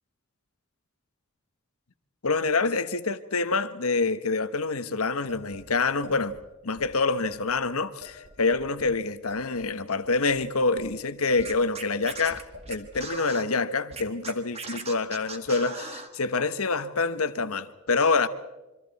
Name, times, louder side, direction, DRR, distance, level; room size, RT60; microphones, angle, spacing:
voice 1, 2.2-6.4 6.6-18.3, left 4 dB, 80° left, 1.1 m, -26 dB
sound 1, 5.3-6.4 6.8-6.9 7.2-7.6 8.0-9.0 9.3-10.9 11.3-11.7 12.0-12.9, left 3 dB, 85° right, 6.2 m, -46 dB
Scratching (performance technique), 11.4-13.4 13.9-16.1, right 4 dB, 30° right, 1.7 m, -38 dB
27.0 x 24.5 x 4.2 m
head